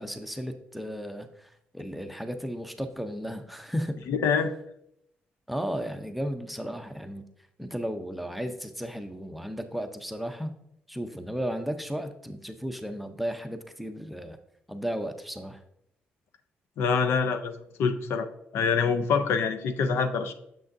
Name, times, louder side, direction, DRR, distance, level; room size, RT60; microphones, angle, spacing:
voice 1, 0.0-4.0 5.5-7.2 7.6-10.5 10.9-14.4 14.7-15.6, equal, ahead, 7 dB, 0.6 m, -34 dB
voice 2, 4.1-4.5 16.8-18.3 18.5-20.3, left 5 dB, 80° left, 9 dB, 0.6 m, -25 dB
6.9 x 6.2 x 2.6 m, 0.75 s
cardioid pair, 115°, 4 cm